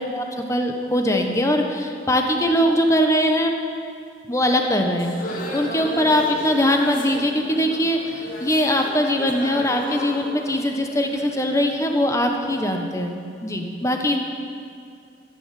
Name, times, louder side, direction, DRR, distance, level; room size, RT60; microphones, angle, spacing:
voice 1, 0.1-3.5 4.3-14.2, equal, 15° left, 3 dB, 1.2 m, -21 dB
sound 1, 5.0-11.9, equal, 50° left, 1.9 m, -35 dB
14.0 x 9.6 x 7.7 m, 2.4 s
head